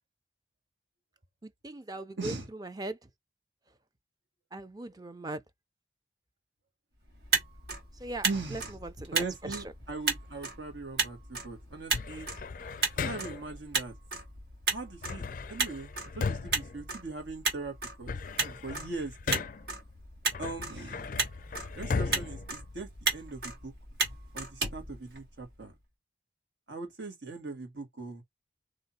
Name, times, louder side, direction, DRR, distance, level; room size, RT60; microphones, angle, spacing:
voice 1, 1.4-3.0 4.5-5.4 8.0-9.6, right 2 dB, 20° right, 0.5 m, -40 dB
voice 2, 2.2-2.5 8.2-8.8 9.1-12.3 13.1-13.9 14.7-15.2 15.5-19.4 20.4-21.2 21.7-23.7 24.3-25.8 26.7-28.2, right 3 dB, 90° right, 1.9 m, -40 dB
Motor vehicle (road), 7.1-25.7, right 4 dB, 65° right, 1.6 m, -35 dB
sound 1, 11.9-13.6 15.0-17.5 17.8-19.8 20.3-23.3, left 4 dB, 50° left, 0.4 m, -37 dB
3.6 x 2.8 x 4.2 m
head